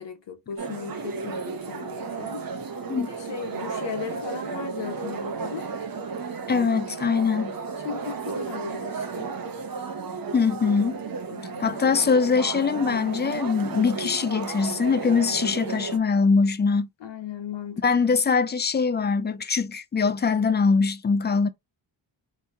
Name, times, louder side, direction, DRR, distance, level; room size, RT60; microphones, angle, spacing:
voice 1, 0.0-2.5 3.0-5.7 7.8-9.4 11.3-11.8 17.0-17.8 18.1-18.2, left 7 dB, 65° left, 0.9 m, -37 dB
sound 1, 0.6-16.0, right 5 dB, 50° right, 0.8 m, -33 dB
voice 2, 6.5-7.5 10.3-11.0 11.6-16.9 17.8-21.5, left 5 dB, 25° left, 0.4 m, -22 dB
2.8 x 2.8 x 3.3 m
wide cardioid pair, 105°, 47 cm